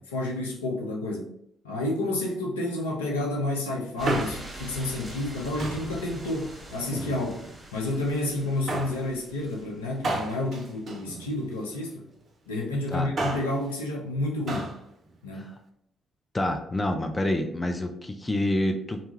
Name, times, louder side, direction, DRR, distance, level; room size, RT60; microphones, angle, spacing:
voice 1, 0.1-1.3 1.6-7.4 7.7-12.1 12.5-14.7 15.2-15.5, left 2 dB, 80° left, -1 dB, 0.5 m, -30 dB
Male speech man speaking, 3.8-4.6 5.6-6.0 6.8-7.6 8.7-9.0 10.0-11.7 12.9-13.6 14.5-14.8 15.1-15.2, right 2 dB, 45° right, 0.5 m, -32 dB
sound 1, 4.0-10.9 11.9-12.0, right 1 dB, 30° right, 0.8 m, -44 dB
voice 2, 16.3-19.0, left 1 dB, 20° left, 5 dB, 0.4 m, -27 dB
2.6 x 2.3 x 2.9 m, 0.72 s
figure-of-eight pair, 40°, 0 cm